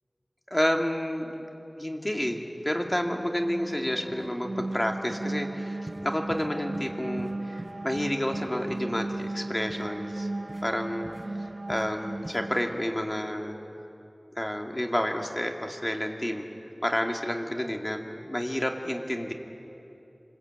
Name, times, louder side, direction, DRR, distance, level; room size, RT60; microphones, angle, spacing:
voice 1, 0.5-1.3 1.8-10.3 10.6-11.1 11.4-13.6 14.4-16.5 16.8-19.3, equal, 30° left, 2 dB, 2.5 m, -30 dB
sound 1, 2.7-13.2, right 2 dB, 75° right, 0.5 m, -36 dB
sound 2, 3.6-3.7 4.1-4.3 4.6-4.8 5.1-5.2 5.9-6.0 6.3-6.5 6.7-6.9 7.2-7.3 7.6-8.8 9.1-9.3 9.7-9.8 10.5-10.6 11.0-11.3 11.7-11.8 12.2-12.4, right 1 dB, 35° right, 3.9 m, -44 dB
26.0 x 21.5 x 9.0 m, 2.9 s
wide cardioid pair, 45°, 0 cm